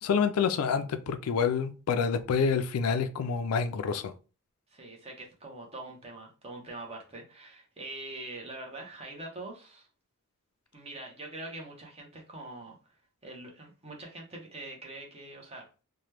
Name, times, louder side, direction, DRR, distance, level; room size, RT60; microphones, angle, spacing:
voice 1, 0.0-4.1, left 6 dB, 80° left, 0.4 m, -27 dB
voice 2, 4.7-9.9 10.7-12.8 13.2-15.6, right 2 dB, 30° right, 0.8 m, -43 dB
2.9 x 2.2 x 3.2 m
head